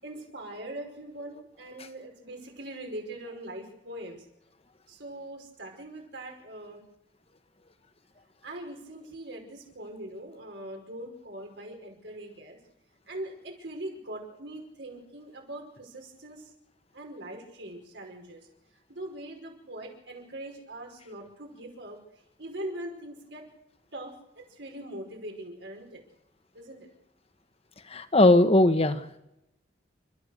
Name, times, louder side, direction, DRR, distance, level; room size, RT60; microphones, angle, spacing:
voice 1, 0.0-4.2 4.9-6.8 8.4-12.6 13.1-16.5 16.9-18.4 18.9-22.0 22.4-23.4 23.9-26.0 26.5-26.9, right 1 dB, 75° right, 2 dB, 5.4 m, -41 dB
voice 2, 27.9-29.2, left 2 dB, 35° left, 10 dB, 1.3 m, -20 dB
29.5 x 13.5 x 6.6 m, 0.92 s
head